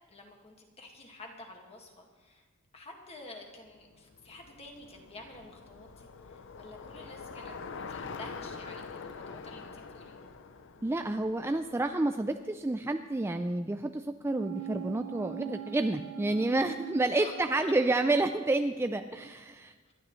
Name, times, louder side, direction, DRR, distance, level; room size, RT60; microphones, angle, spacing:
voice 1, 0.1-2.4 2.7-10.2 17.2-17.3 17.6-17.7 19.9-20.0, left 2 dB, 30° left, 1 dB, 1.8 m, -49 dB
Bicycle, 3.8-12.1, left 5 dB, 60° left, 0.7 m, -45 dB
voice 2, 10.8-19.7, right 2 dB, 10° right, 7 dB, 0.3 m, -29 dB
sound 1, 14.3-18.0 18.4-18.5, right 17 dB, 85° right, 0.5 m, -42 dB
26.0 x 11.5 x 3.1 m, 1.4 s
head